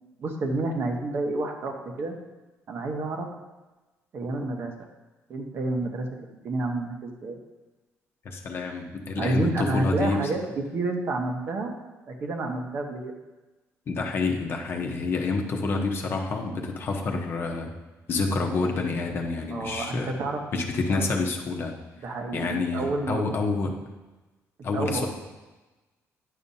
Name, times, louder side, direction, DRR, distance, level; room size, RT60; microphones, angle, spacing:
voice 1, 0.2-2.2 2.7-3.3 4.1-4.7 5.3-7.4 9.2-11.8 12.1-13.1 19.5-20.4 20.9-21.1 22.0-23.3 24.7-25.1, right 2 dB, 50° right, 3 dB, 1.1 m, -29 dB
voice 2, 8.2-10.3 13.9-17.7 18.1-20.1 20.5-21.8 22.3-23.7 24.6-25.1, left 3 dB, 45° left, 2 dB, 0.9 m, -28 dB
10.0 x 6.8 x 2.8 m, 1.2 s
cardioid pair, 150°, 5 cm